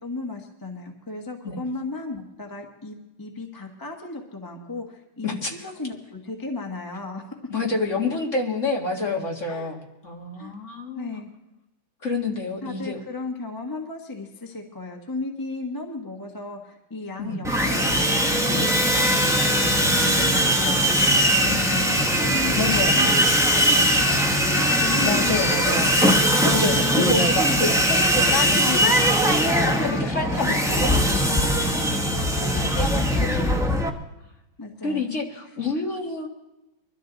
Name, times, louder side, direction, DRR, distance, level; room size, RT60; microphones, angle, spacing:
voice 1, 0.0-7.4 9.5-9.7 10.4-10.5 10.9-11.3 12.6-23.2 23.5-26.2 26.6-27.0 32.9-33.4 34.6-35.0, left 3 dB, 10° left, 2 dB, 1.0 m, -35 dB
voice 2, 5.2-5.7 7.5-11.2 12.0-13.0 17.2-17.4 20.3-20.5 22.6-23.0 25.0-25.9 26.4-29.2 29.5-33.6 34.8-36.3, left 3 dB, 35° left, 1 dB, 2.0 m, -28 dB
Sawing, 17.4-33.9, equal, 5° right, 0.3 m, -20 dB
23.0 x 13.0 x 4.0 m, 0.95 s
omnidirectional pair, 2.4 m